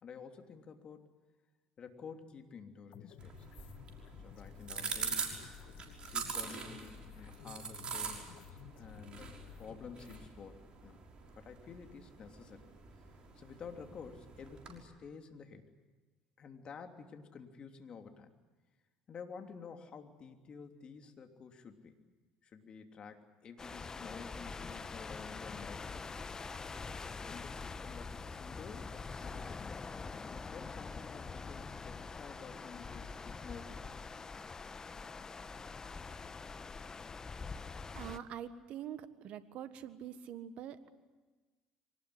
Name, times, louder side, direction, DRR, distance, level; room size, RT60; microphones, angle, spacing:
voice 1, 0.0-1.1 1.8-3.5 4.2-5.4 6.0-8.3 8.8-11.0 11.4-12.7 13.3-15.6 16.4-18.3 19.1-21.9 22.4-26.1 26.8-26.9 27.2-29.6 30.5-34.0, left 5 dB, 45° left, 5 dB, 3.1 m, -51 dB
sound 1, 2.9-10.3, left 9 dB, 70° left, 1.6 m, -54 dB
sound 2, 3.2-14.8, right 5 dB, 45° right, 5.9 m, -44 dB
sound 3, 23.6-38.2, left 4 dB, 30° left, 1.2 m, -44 dB
voice 2, 37.9-40.9, right 9 dB, 60° right, 12 dB, 1.5 m, -45 dB
24.5 x 19.5 x 9.9 m, 1.3 s
hypercardioid pair, 70°, 2 cm